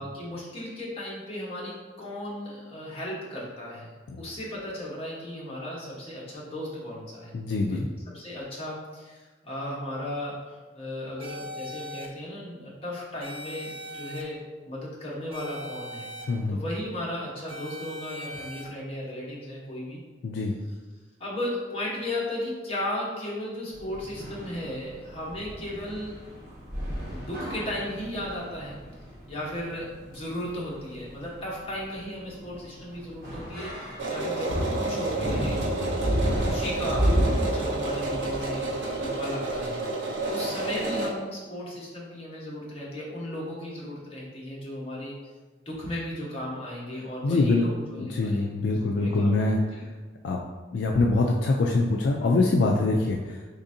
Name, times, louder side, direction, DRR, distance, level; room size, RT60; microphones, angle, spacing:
voice 1, 0.0-7.3 7.7-7.8 8.1-10.4 10.7-16.0 16.5-20.0 21.2-26.2 27.1-28.8 29.3-36.0 36.4-39.8 40.3-45.1 45.7-48.5 48.8-49.6, left 1 dB, 30° left, -5 dB, 1.0 m, -35 dB
voice 2, 7.3-7.9 16.3-16.6 20.2-20.6 47.2-47.7 48.0-49.6 50.2-50.4 50.7-53.4, left 2 dB, 65° left, 0 dB, 0.3 m, -24 dB
sound 1, 11.2-12.1 13.2-14.2 15.3-16.2 17.5-18.6, equal, 30° right, 0.4 m, -40 dB
sound 2, 23.7-39.4, equal, 55° right, 1.5 m, -32 dB
sound 3, 34.0-41.1, right 2 dB, 75° right, 0.6 m, -30 dB
3.8 x 3.4 x 2.6 m, 1.3 s
head